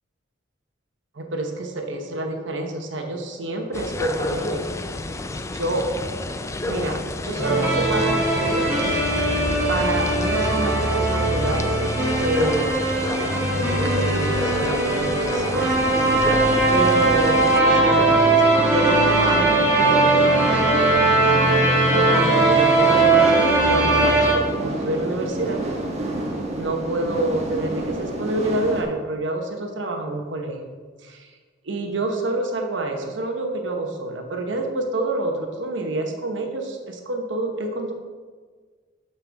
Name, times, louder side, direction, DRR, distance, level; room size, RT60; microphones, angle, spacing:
voice 1, 1.1-4.7 5.5-5.9 6.6-8.9 9.7-11.8 12.1-12.7 13.5-15.7 16.7-18.2 18.7-20.1 22.0-25.6 26.6-31.3 31.6-37.9, right 2 dB, 75° right, 3 dB, 1.0 m, -27 dB
sound 1, 3.7-17.6, left 2 dB, 15° left, 0.4 m, -30 dB
sound 2, 7.4-24.3, right 2 dB, 15° right, 2.4 m, -19 dB
sound 3, 15.7-28.8, right 1 dB, 35° right, 1.3 m, -29 dB
12.5 x 5.6 x 3.5 m, 1.5 s
head